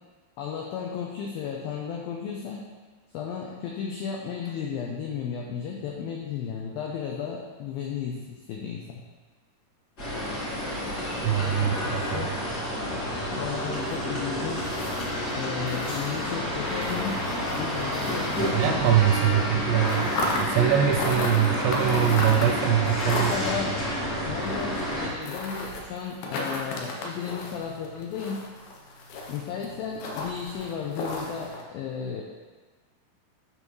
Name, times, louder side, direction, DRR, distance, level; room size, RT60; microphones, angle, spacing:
voice 1, 0.4-2.7 3.1-9.0 11.3-12.4 13.3-14.6 15.4-17.2 17.6-18.7 23.1-23.7 24.2-28.4 29.3-32.2, left 7 dB, 90° left, -1 dB, 2.1 m, -34 dB
sound 1, 10.0-25.1, left 1 dB, 45° left, 1.2 m, -29 dB
voice 2, 11.2-12.4 18.5-23.4, right 10 dB, 85° right, 3 dB, 2.4 m, -23 dB
sound 2, 13.1-19.1 19.3-31.6, left 2 dB, 75° left, 2.3 m, -36 dB
9.4 x 5.6 x 3.1 m, 1.4 s
omnidirectional pair, 5.1 m